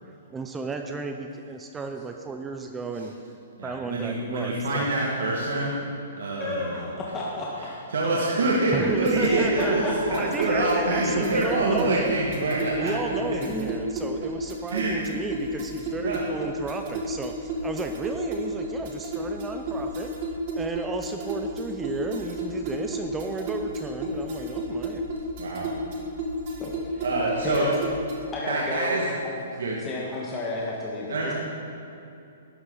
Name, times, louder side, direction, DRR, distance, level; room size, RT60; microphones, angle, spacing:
voice 1, 0.3-3.1 3.6-4.9 8.7-12.2 12.8-20.1 20.5-25.1, right 4 dB, 15° right, 5 dB, 0.6 m, -33 dB
voice 2, 3.6-5.8 6.2-6.8 7.6-9.8 10.1-12.9 14.7-15.1 16.0-16.2 25.4-25.7 27.0-27.7 28.5-29.1 29.6-29.8 31.1-31.3, right 2 dB, 80° right, -4 dB, 1.9 m, -26 dB
voice 3, 6.4-7.5 9.0-10.2 13.5-13.7 26.6-27.0 27.4-27.7 28.3-29.3 29.8-31.3, left 2 dB, 15° left, -5 dB, 1.5 m, -32 dB
sound 1, 8.8-28.3, equal, 45° right, 2.1 m, -32 dB
12.0 x 11.0 x 4.0 m, 2.8 s
hypercardioid pair, 140°, 0 cm